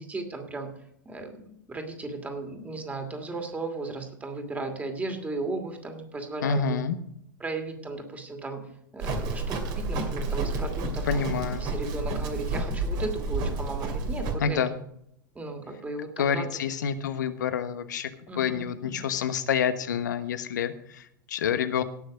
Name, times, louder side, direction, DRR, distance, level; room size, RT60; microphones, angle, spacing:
voice 1, 0.1-0.7 1.0-6.8 7.4-8.7 8.9-14.6 15.3-16.5 18.3-19.1, right 3 dB, 15° right, 5 dB, 2.5 m, -36 dB
voice 2, 6.4-7.0 11.1-11.6 14.4-14.7 16.2-18.1 18.4-21.8, left 7 dB, 65° left, 11 dB, 1.1 m, -28 dB
Livestock farm animals working animals, 9.0-14.3, right 3 dB, 40° right, 2.4 m, -30 dB
18.0 x 6.4 x 5.2 m, 0.72 s
figure-of-eight pair, 90°, 11 cm